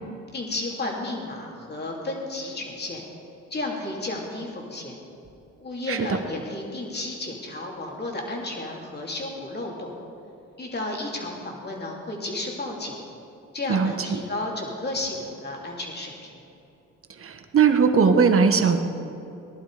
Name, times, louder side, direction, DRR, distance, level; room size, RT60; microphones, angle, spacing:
voice 1, 0.3-3.0 3.5-5.0 5.6-9.9 10.6-13.0 13.5-16.4, left 2 dB, 35° left, -1 dB, 3.4 m, -32 dB
voice 2, 13.7-14.2 17.2-18.8, right 6 dB, 50° right, 6 dB, 1.4 m, -20 dB
19.0 x 11.0 x 5.1 m, 2.8 s
cardioid pair, 90°, 30 cm